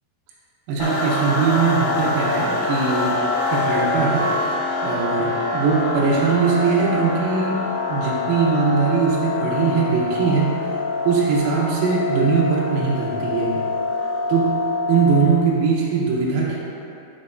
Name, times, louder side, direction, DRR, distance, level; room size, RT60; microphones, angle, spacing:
voice 1, 0.7-3.2 3.5-4.3 4.8-7.6 7.9-10.6 11.1-13.7 14.3-16.6, right 5 dB, 85° right, -5 dB, 2.1 m, -21 dB
sound 1, 0.8-15.3, left 3 dB, 90° left, 3.4 m, -25 dB
6.4 x 6.2 x 2.6 m, 2.7 s
omnidirectional pair, 5.5 m